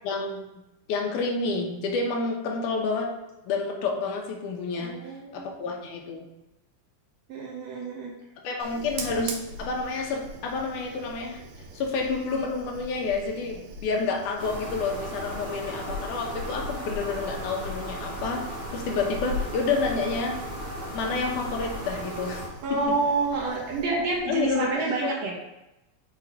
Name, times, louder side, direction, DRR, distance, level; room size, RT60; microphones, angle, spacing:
voice 1, 0.0-0.4 0.9-3.1 3.5-5.0 5.3-6.3 8.4-11.4 11.7-20.4 20.9-22.4 22.7-22.8 24.3-25.2, left 4 dB, 80° left, 1 dB, 2.4 m, -29 dB
voice 2, 4.7-5.5 7.3-8.1 22.6-25.3, right 3 dB, 65° right, -2 dB, 2.0 m, -28 dB
Fire, 8.6-24.7, equal, 90° right, 2.4 m, -41 dB
sound 1, 14.4-22.5, equal, 30° right, 1.0 m, -36 dB
6.9 x 3.8 x 4.7 m, 0.94 s
omnidirectional pair, 3.6 m